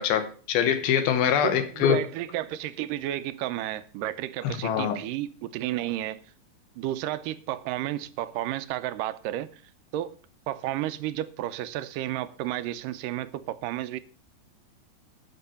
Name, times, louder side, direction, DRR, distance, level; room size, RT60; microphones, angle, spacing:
voice 1, 0.0-2.0 4.4-5.0, left 8 dB, 85° left, 2.9 m, -24 dB
voice 2, 1.4-6.2 6.8-9.6 9.9-10.2 10.5-14.0, right 14 dB, 80° right, 2.1 m, -32 dB
12.0 x 6.5 x 7.0 m
omnidirectional pair, 4.2 m